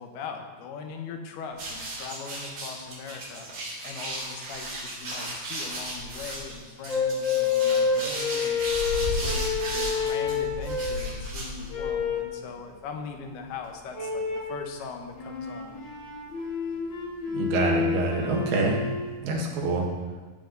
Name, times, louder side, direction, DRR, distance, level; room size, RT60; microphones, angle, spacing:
voice 1, 0.0-3.5 3.8-8.6 9.0-15.8, left 5 dB, 80° left, 4 dB, 3.0 m, -40 dB
sound 1, 1.5-12.0, right 1 dB, 60° right, 4.8 m, -34 dB
sound 2, 6.9-11.1 11.7-12.3 13.9-14.6 15.1-19.1, left 6 dB, 50° left, 3.7 m, -28 dB
voice 2, 17.3-18.8 19.2-19.9, right 3 dB, 75° right, -1 dB, 3.5 m, -26 dB
15.5 x 7.6 x 3.9 m, 1.3 s
omnidirectional pair, 4.6 m